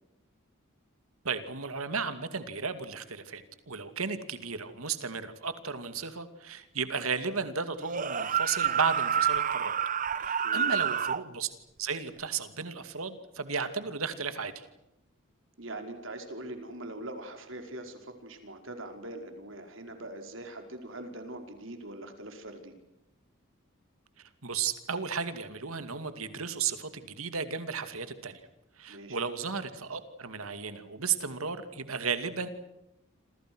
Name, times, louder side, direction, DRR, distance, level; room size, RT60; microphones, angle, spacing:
voice 1, 1.2-3.4 3.7-9.7 10.2-11.5 11.8-14.7 24.2-28.4 28.8-32.5, right 5 dB, 90° right, 10 dB, 2.5 m, -34 dB
sound 1, 7.8-11.2, right 8 dB, 40° right, 0.9 m, -28 dB
voice 2, 10.4-10.8 15.6-22.7 28.9-29.2, right 1 dB, 65° right, 5 dB, 5.0 m, -42 dB
29.0 x 26.5 x 6.3 m, 0.90 s
head